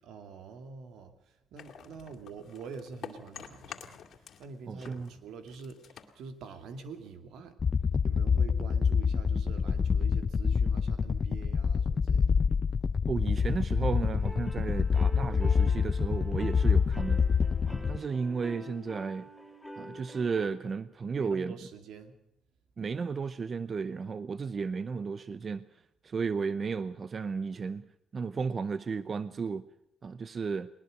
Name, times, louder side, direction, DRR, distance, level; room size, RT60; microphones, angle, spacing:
voice 1, 0.0-7.6 8.0-12.3 21.1-22.2, right 5 dB, 80° right, 9 dB, 2.5 m, -46 dB
sound 1, 1.6-4.5 4.8-7.2, left 8 dB, 65° left, 2.4 m, -48 dB
voice 2, 4.7-5.1 13.1-17.2 17.6-19.3 19.8-21.5 22.8-25.7 26.0-27.9 28.1-29.6 30.0-30.7, right 5 dB, 40° right, 15 dB, 0.7 m, -33 dB
sound 2, 7.6-18.0, left 6 dB, 40° left, 0.7 m, -27 dB
sound 3, 14.2-20.5, equal, ahead, 6.1 m, -46 dB
20.5 x 20.5 x 6.5 m, 0.79 s
cardioid pair, 90°, 0 cm